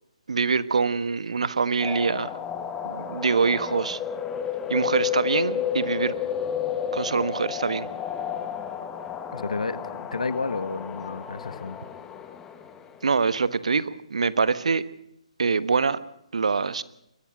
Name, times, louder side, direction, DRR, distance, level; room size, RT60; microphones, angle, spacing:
voice 1, 0.3-2.4 2.8-4.0 4.7-6.1 6.9-7.9 13.0-14.8 15.4-16.0 16.3-16.8, right 5 dB, 65° right, 15 dB, 1.3 m, -24 dB
sound 1, 1.8-13.1, left 8 dB, 10° left, 1.2 m, -32 dB
voice 2, 9.3-11.8, left 4 dB, 70° left, 13 dB, 1.6 m, -31 dB
22.5 x 19.0 x 6.3 m, 0.81 s
figure-of-eight pair, 145°, 4 cm